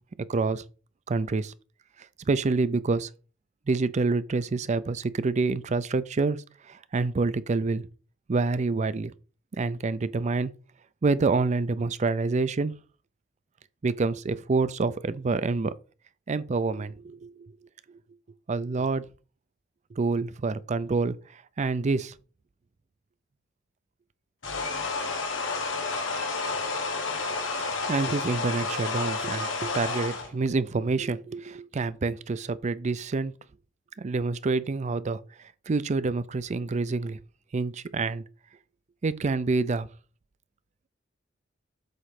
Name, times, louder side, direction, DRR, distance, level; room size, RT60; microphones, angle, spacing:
voice 1, 0.3-0.6 1.1-1.5 2.2-3.1 3.7-6.4 6.7-7.9 8.3-9.1 9.6-10.5 11.0-12.7 13.8-15.7 16.3-17.3 18.5-19.0 20.0-21.1 21.6-22.1 27.9-33.3 34.0-35.2 35.7-37.2 37.5-38.2 39.0-39.9, right 3 dB, 35° right, 0.4 m, -27 dB
sound 1, 24.4-30.3, left 3 dB, 85° left, 1.6 m, -30 dB
8.0 x 3.1 x 5.8 m
head